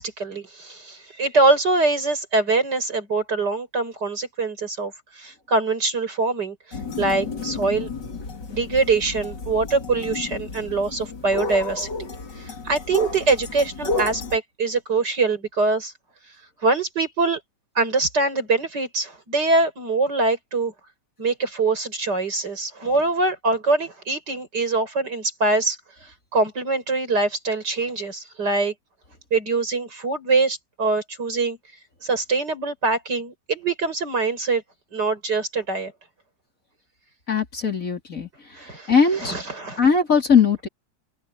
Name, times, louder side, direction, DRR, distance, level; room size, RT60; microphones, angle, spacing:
voice 1, 0.0-6.6 7.0-7.9 8.5-11.9 12.4-15.9 16.6-17.4 17.7-20.7 21.2-25.8 26.3-28.7 29.3-31.6 32.0-34.6 34.9-35.9 38.6-39.8, right 3 dB, 75° right, 6.7 m, -23 dB
sound 1, 6.7-14.4, left 3 dB, 80° left, 3.4 m, -31 dB
voice 2, 37.3-38.3 38.9-39.3 39.8-40.7, left 6 dB, 50° left, 3.8 m, -19 dB
open air
omnidirectional pair, 1.8 m